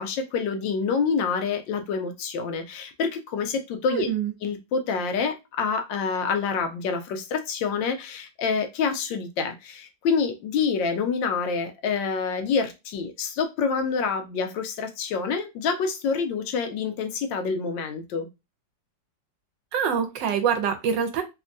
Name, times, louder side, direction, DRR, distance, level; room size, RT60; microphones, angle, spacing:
voice 1, 0.0-4.1 4.4-18.3, left 5 dB, 80° left, 6 dB, 1.3 m, -27 dB
voice 2, 3.9-4.3 19.7-21.2, right 7 dB, 75° right, 7 dB, 1.2 m, -25 dB
3.4 x 2.1 x 2.5 m, 0.24 s
omnidirectional pair, 2.0 m